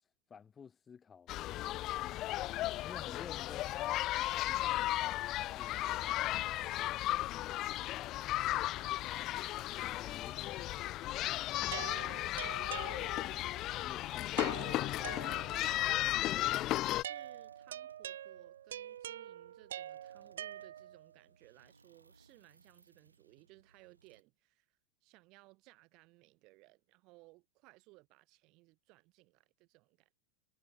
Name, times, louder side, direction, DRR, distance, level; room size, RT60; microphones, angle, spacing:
voice 1, 0.3-1.3 2.8-4.0 4.3-6.4 6.8-7.9 9.8-10.7 11.8-12.0 13.8-14.8, left 6 dB, 20° left, 4.2 m, -53 dB
sound 1, 1.3-17.0, left 16 dB, 35° left, 0.6 m, -35 dB
sound 2, 5.6-24.2, right 3 dB, 80° right, 6.3 m, -67 dB
sound 3, 11.7-13.5 14.4-15.8 17.0-21.1, right 11 dB, 60° right, 0.5 m, -45 dB
voice 2, 15.0-16.6 16.9-30.2, right 23 dB, 40° right, 5.1 m, -60 dB
figure-of-eight pair, 90°, 0 cm